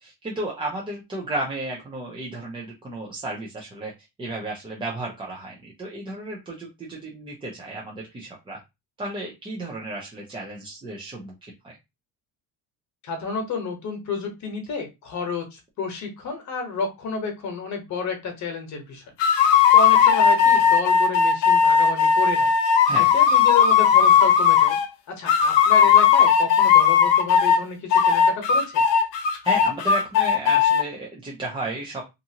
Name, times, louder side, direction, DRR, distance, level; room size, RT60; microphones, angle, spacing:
voice 1, 0.0-3.9 4.2-8.6 9.0-11.8 20.4-20.6 22.8-23.1 29.4-32.0, right 2 dB, 15° right, -3 dB, 0.3 m, -33 dB
voice 2, 13.0-19.0 19.7-22.5 23.1-24.8 25.1-28.8, left 4 dB, 40° left, 4 dB, 1.0 m, -30 dB
sound 1, 19.2-24.9 25.3-27.6 27.9-30.8, left 7 dB, 75° left, 0.7 m, -17 dB
2.6 x 2.4 x 2.7 m, 0.23 s
cardioid pair, 170°, 42 cm